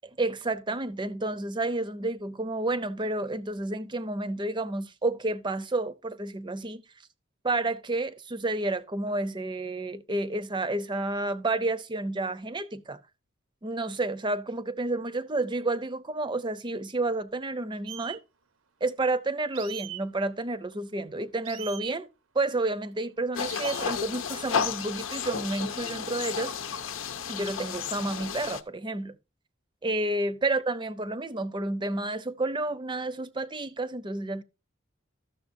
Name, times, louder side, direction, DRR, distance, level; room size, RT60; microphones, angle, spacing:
voice 1, 0.2-6.8 7.4-13.0 13.6-18.2 18.8-22.1 22.3-26.5 27.3-29.2 29.8-34.4, right 2 dB, 25° right, 0.6 m, -30 dB
sound 1, 17.9-18.2 19.5-20.0 21.4-22.0 23.5-23.9, right 13 dB, 85° right, 0.8 m, -39 dB
sound 2, 23.3-28.6, left 6 dB, 85° left, 0.8 m, -32 dB
13.0 x 6.7 x 2.6 m
head